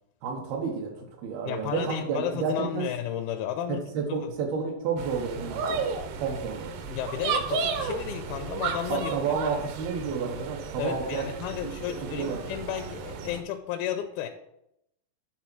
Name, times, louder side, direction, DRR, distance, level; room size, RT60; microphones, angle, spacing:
voice 1, 0.2-2.8 3.7-5.8 6.1-6.7 8.9-11.3 11.6-11.7 12.0-12.5, right 5 dB, 90° right, 0 dB, 3.1 m, -30 dB
voice 2, 1.5-4.3 6.8-9.3 10.8-14.3, left 10 dB, 90° left, 5 dB, 2.5 m, -33 dB
sound 1, 5.0-13.4, right 5 dB, 75° right, 2.4 m, -33 dB
9.5 x 3.9 x 6.1 m, 0.79 s
omnidirectional pair, 4.2 m